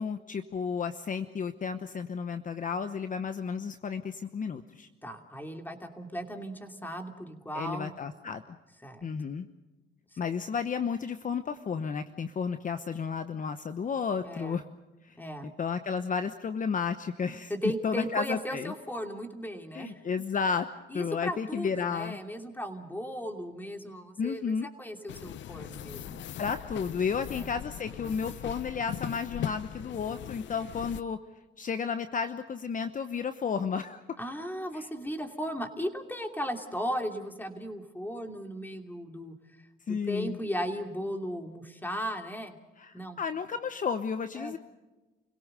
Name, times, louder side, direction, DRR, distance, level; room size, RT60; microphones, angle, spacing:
voice 1, 0.0-4.9 7.5-8.4 9.0-9.5 10.2-14.6 15.0-15.2 15.4-17.5 17.8-18.7 19.7-20.7 20.9-22.2 24.2-24.7 26.4-31.2 31.6-34.2 34.7-34.8 39.9-40.4 42.8-44.6, left 6 dB, 40° left, 10 dB, 1.0 m, -32 dB
voice 2, 5.0-8.0 8.8-9.1 10.1-10.3 14.2-14.6 15.2-15.5 17.5-20.0 20.9-26.2 27.3-27.5 34.2-39.3 39.9-42.6 42.9-43.2 44.4-44.5, equal, 10° left, 5 dB, 2.7 m, -36 dB
sound 1, 25.1-31.0, left 11 dB, 65° left, 0.7 m, -40 dB
29.0 x 17.5 x 6.7 m, 1.1 s
cardioid pair, 90°, 20 cm